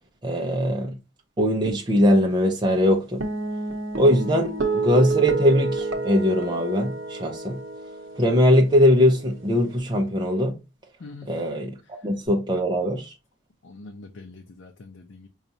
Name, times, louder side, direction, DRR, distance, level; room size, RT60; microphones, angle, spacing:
voice 1, 0.2-1.0 1.4-3.2 4.0-7.6 8.2-10.6 11.3-13.1, equal, 25° right, 0.5 m, -21 dB
sound 1, 3.2-9.8, right 3 dB, 85° right, 0.7 m, -30 dB
voice 2, 11.0-11.3 13.6-15.3, left 3 dB, 80° left, 0.5 m, -43 dB
5.1 x 2.4 x 2.7 m
head